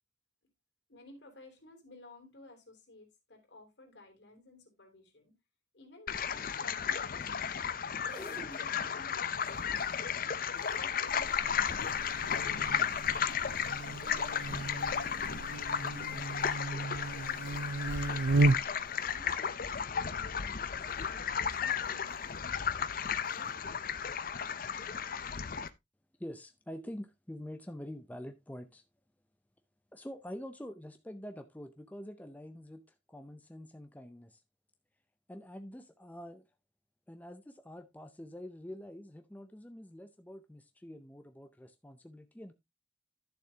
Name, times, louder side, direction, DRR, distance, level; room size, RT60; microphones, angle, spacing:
voice 1, 0.9-5.3 5.7-7.3 8.1-9.9 10.5-12.9 13.6-14.7 15.8-18.7 19.0-22.4 23.3-23.5, left 2 dB, 65° left, 3 dB, 3.2 m, -55 dB
sound 1, 6.1-25.7, left 7 dB, 50° left, 0.6 m, -34 dB
sound 2, 7.7-23.8, right 1 dB, 10° right, 3.1 m, -60 dB
Buzz, 11.1-18.9, right 2 dB, 80° right, 0.5 m, -34 dB
voice 2, 26.2-28.8 29.9-32.8 33.1-34.4 35.3-36.4 37.1-42.5, equal, 10° left, 7 dB, 0.5 m, -46 dB
11.5 x 7.0 x 2.8 m, 0.20 s
head